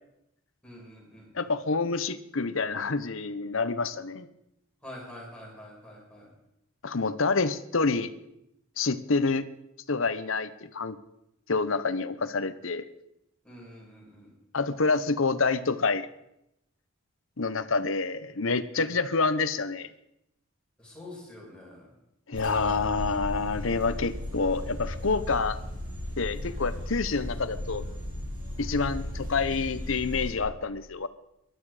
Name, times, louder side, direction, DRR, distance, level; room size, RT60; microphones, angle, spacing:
voice 1, 0.6-1.5 4.8-6.3 13.4-14.3 18.7-18.9 20.8-21.9, left 1 dB, 5° left, -4 dB, 6.2 m, -46 dB
voice 2, 1.3-4.3 6.8-8.1 8.8-9.4 9.9-10.9 11.5-12.8 14.5-16.1 17.4-19.9 22.3-25.6 26.2-27.9 28.6-31.1, left 4 dB, 70° left, 14 dB, 0.9 m, -27 dB
sound 1, 22.3-30.3, left 1 dB, 40° right, 4.2 m, -36 dB
20.5 x 12.0 x 5.0 m, 0.84 s
head